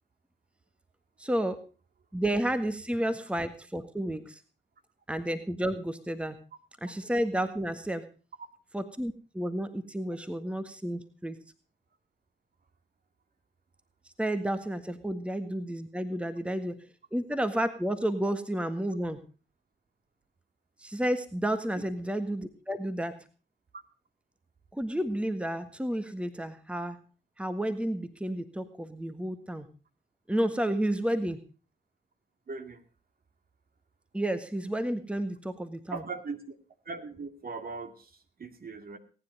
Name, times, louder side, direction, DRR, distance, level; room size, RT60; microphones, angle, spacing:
voice 1, 1.2-1.6 2.1-4.4 5.1-6.4 6.8-8.1 8.7-11.4 14.2-19.2 20.8-23.2 24.7-27.0 27.4-29.7 30.3-31.4 34.1-36.0, right 1 dB, 5° right, 10 dB, 1.6 m, -31 dB
voice 2, 32.5-32.8 35.9-36.6 36.8-39.0, right 4 dB, 45° right, 7 dB, 2.4 m, -39 dB
18.5 x 9.9 x 5.4 m, 0.37 s
hypercardioid pair, 45°, 21 cm